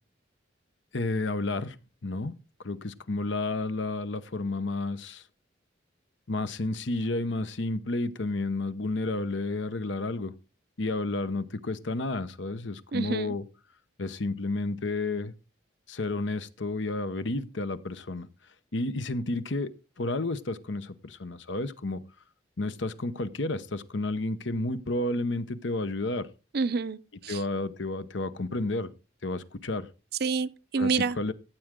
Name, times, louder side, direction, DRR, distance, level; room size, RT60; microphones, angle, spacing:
voice 1, 0.9-1.8 2.0-2.3 2.6-5.2 6.3-10.3 10.8-13.4 14.0-15.3 15.9-18.3 18.7-22.0 22.6-26.3 27.3-28.9 29.2-29.9 30.8-30.9 31.2-31.3, left 2 dB, 75° left, 0.9 m, -31 dB
voice 2, 12.9-13.3 26.5-27.4 30.2-31.2, right 4 dB, 55° right, 0.6 m, -28 dB
14.5 x 7.8 x 3.7 m
head